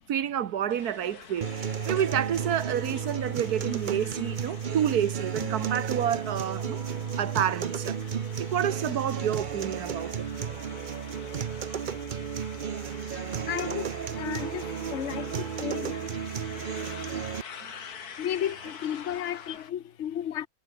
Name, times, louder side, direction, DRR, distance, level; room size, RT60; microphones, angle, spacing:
voice 1, 0.1-6.8 7.2-8.0 8.4-10.3 17.6-17.7 18.4-18.5, right 9 dB, 90° right, 1.6 m, -29 dB
sound 1, 0.7-19.7, left 7 dB, 90° left, 2.1 m, -47 dB
sound 2, 1.4-17.4, right 7 dB, 45° right, 0.7 m, -33 dB
voice 2, 13.5-13.9 14.2-14.6 14.9-16.0 18.2-20.5, left 10 dB, 55° left, 1.1 m, -33 dB
omnidirectional pair, 1.6 m